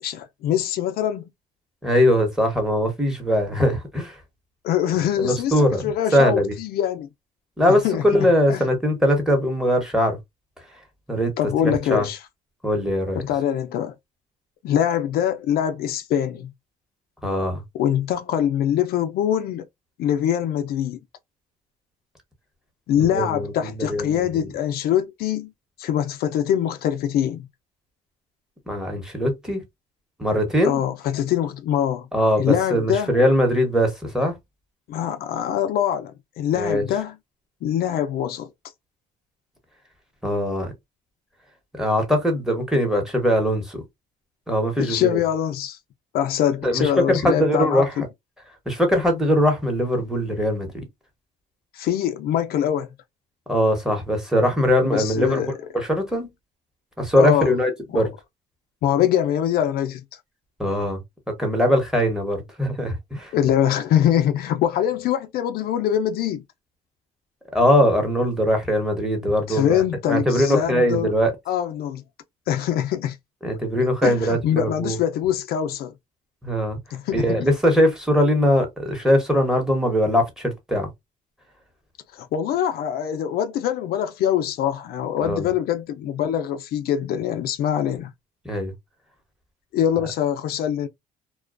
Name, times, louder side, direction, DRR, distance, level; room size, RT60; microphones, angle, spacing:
voice 1, 0.0-1.3 4.6-7.1 7.8-8.7 11.4-12.2 13.2-13.9 14.6-16.5 17.7-19.7 20.0-21.0 22.9-25.5 25.8-27.5 30.6-32.1 32.4-33.1 34.9-37.1 37.6-38.5 44.8-45.8 46.1-48.1 51.7-52.9 54.8-55.5 57.2-57.5 57.9-58.1 58.8-60.0 63.3-66.4 69.5-71.1 71.5-72.0 72.5-73.2 74.0-75.9 76.9-77.4 82.1-88.1 89.7-90.9, left 10 dB, 65° left, 0.4 m, -23 dB
voice 2, 1.8-4.2 4.9-5.8 6.1-6.5 7.6-10.2 11.1-11.3 11.6-12.1 12.6-13.2 17.2-17.6 23.1-24.3 28.7-29.6 30.2-30.8 32.1-34.3 36.5-36.8 40.2-40.7 41.8-43.8 44.5-45.2 46.6-48.1 48.7-50.8 53.5-56.3 57.0-58.1 60.6-61.0 61.4-63.3 67.5-71.3 73.4-75.0 76.4-76.8 77.1-80.9 85.2-85.5 88.4-88.7, equal, 5° right, 1.0 m, -21 dB
2.3 x 2.2 x 2.3 m
cardioid pair, 110°, 17 cm